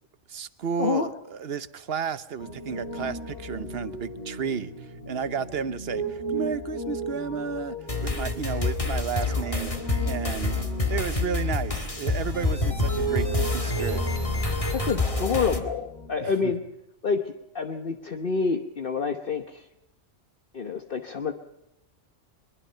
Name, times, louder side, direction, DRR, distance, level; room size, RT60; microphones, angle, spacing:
voice 1, 0.3-9.7 10.0-10.6 10.9-14.0 16.2-16.5, right 6 dB, 55° right, 14 dB, 1.1 m, -32 dB
voice 2, 0.8-1.1 14.7-16.6 17.0-19.6 20.5-21.3, left 5 dB, 45° left, 6 dB, 1.2 m, -28 dB
Piano, 2.4-16.1, right 2 dB, 70° left, 7.4 m, -36 dB
sound 1, 7.9-15.6, left 2 dB, 25° left, 2.0 m, -27 dB
22.5 x 22.0 x 5.7 m, 0.87 s
omnidirectional pair, 1.3 m